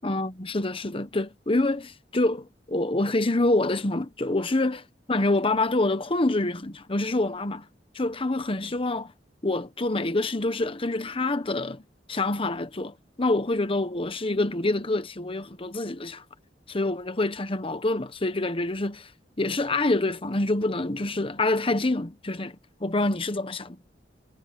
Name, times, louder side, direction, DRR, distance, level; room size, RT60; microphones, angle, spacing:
voice 1, 0.0-7.7 7.9-9.1 9.4-11.8 12.1-16.2 16.7-19.1 19.4-23.8, left 2 dB, 30° left, 1.1 m, -26 dB
head